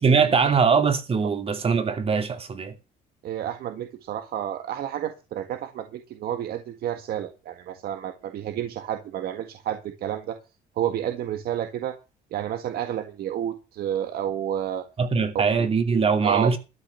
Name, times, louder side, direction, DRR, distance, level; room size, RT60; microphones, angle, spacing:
voice 1, 0.0-2.8 15.0-16.6, right 5 dB, 35° right, 2.7 m, -22 dB
voice 2, 3.2-10.4 10.8-11.9 12.3-14.8 16.2-16.6, right 10 dB, 65° right, 1.7 m, -30 dB
13.5 x 6.0 x 7.8 m
cardioid pair, 110°, 17 cm